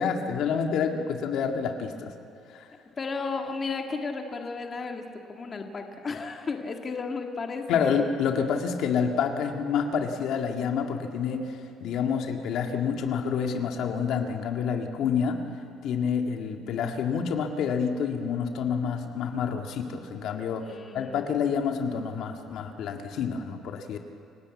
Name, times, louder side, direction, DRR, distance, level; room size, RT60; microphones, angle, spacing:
voice 1, 0.0-2.1 2.5-2.7 7.7-11.5 11.8-15.4 15.8-20.6 20.9-24.0, left 6 dB, 65° left, 4 dB, 1.8 m, -28 dB
voice 2, 3.0-5.0 5.3-8.1 20.6-21.3, left 4 dB, 25° left, 3 dB, 1.8 m, -34 dB
28.5 x 17.5 x 8.4 m, 2.5 s
cardioid pair, 155°, 0 cm